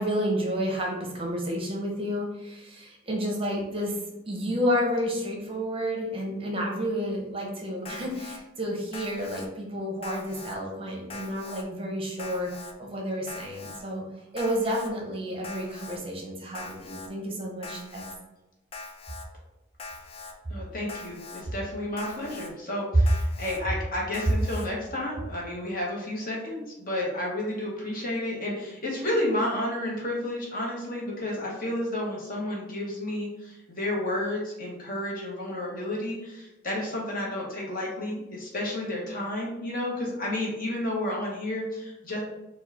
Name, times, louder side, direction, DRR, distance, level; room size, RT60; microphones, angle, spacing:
voice 1, 0.0-4.0 4.2-12.5 12.8-14.0 14.3-18.0, equal, 30° right, 0 dB, 0.7 m, -30 dB
Alarm, 7.8-8.4 8.9-9.5 10.0-10.6 11.1-11.6 12.2-12.7 13.3-13.8 14.4-14.9 15.4-16.0 16.5-17.1 17.6-18.2 18.7-19.3 19.8-20.3 20.9-21.4 22.0-22.5 23.1-23.6 24.1-24.7, left 3 dB, 30° left, 0.4 m, -42 dB
voice 2, 20.5-42.2, left 1 dB, 45° left, -3 dB, 1.1 m, -31 dB
4.5 x 2.3 x 4.1 m, 0.97 s
head